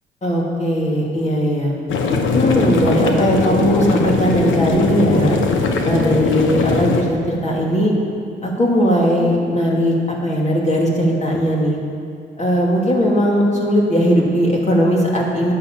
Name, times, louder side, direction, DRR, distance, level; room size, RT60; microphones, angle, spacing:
voice 1, 0.2-1.7 2.3-5.4 5.8-7.9 8.4-11.8 12.4-15.5, equal, 35° left, -3 dB, 2.6 m, -18 dB
sound 1, 1.9-7.0, left 4 dB, 80° left, 1.2 m, -19 dB
10.0 x 9.6 x 7.3 m, 2.4 s
cardioid pair, 80°, 20 cm